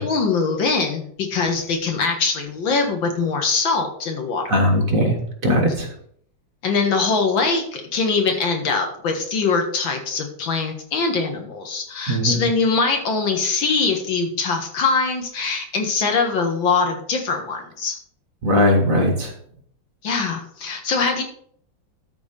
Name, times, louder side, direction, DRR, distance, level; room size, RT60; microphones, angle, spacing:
voice 1, 0.0-4.7 6.6-18.0 20.0-21.2, left 4 dB, 80° left, 3 dB, 2.3 m, -22 dB
voice 2, 4.5-5.9 12.1-12.4 18.4-19.3, equal, 45° right, 2 dB, 1.9 m, -19 dB
13.0 x 4.4 x 5.2 m, 0.63 s
omnidirectional pair, 2.1 m